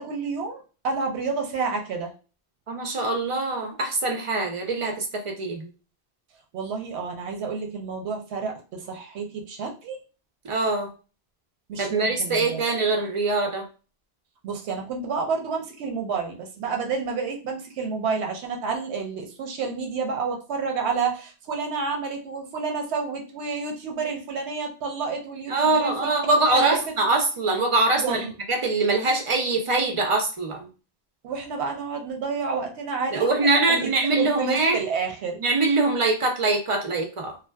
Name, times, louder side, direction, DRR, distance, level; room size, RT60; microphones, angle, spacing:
voice 1, 0.0-2.1 6.5-10.0 11.7-12.6 14.4-25.9 26.5-26.8 28.0-28.3 31.2-35.4, right 5 dB, 90° right, 3 dB, 0.9 m, -29 dB
voice 2, 2.7-5.7 10.4-10.9 11.8-13.7 25.5-28.2 28.5-30.7 33.1-34.8 35.4-37.4, right 3 dB, 50° right, 3 dB, 0.4 m, -23 dB
2.6 x 2.2 x 2.2 m, 0.35 s
omnidirectional pair, 1.1 m